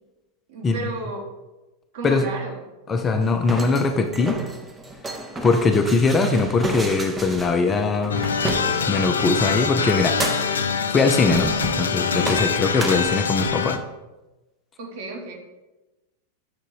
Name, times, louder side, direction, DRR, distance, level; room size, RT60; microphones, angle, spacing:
voice 1, 0.5-1.2 1.9-2.6 14.8-15.3, right 3 dB, 50° right, 0 dB, 1.4 m, -32 dB
voice 2, 2.9-4.4 5.4-8.2 8.9-10.2 10.9-13.8, left 3 dB, 20° left, 5 dB, 0.5 m, -21 dB
sound 1, 3.2-9.2 9.9-10.7 11.2-11.9 12.2-13.7, right 1 dB, 15° right, 0.7 m, -31 dB
sound 2, 8.1-13.8, left 6 dB, 70° left, 0.4 m, -24 dB
6.7 x 3.7 x 4.7 m, 1.1 s
figure-of-eight pair, 90°, 0 cm